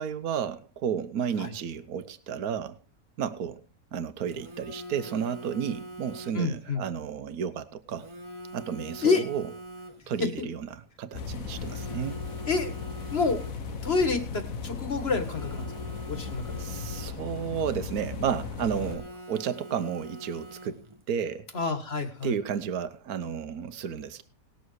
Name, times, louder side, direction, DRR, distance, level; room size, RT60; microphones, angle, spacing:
voice 1, 0.0-2.8 3.2-3.6 3.9-8.1 8.5-9.5 10.1-12.2 16.6-21.5 22.2-24.2, right 8 dB, 75° right, 11 dB, 1.4 m, -32 dB
Telephone, 4.3-6.6 7.9-10.3 11.5-13.8 15.1-17.4 18.7-21.0, right 1 dB, 20° right, 1.1 m, -44 dB
voice 2, 6.3-6.8 9.0-9.2 10.2-10.3 12.5-12.7 13.1-13.4 13.8-15.7 16.0-16.7 21.5-22.3, left 4 dB, 45° left, 8 dB, 1.9 m, -28 dB
sound 1, 11.1-18.9, left 5 dB, 65° left, 1.7 m, -36 dB
19.5 x 7.0 x 4.7 m, 0.34 s
omnidirectional pair, 1.6 m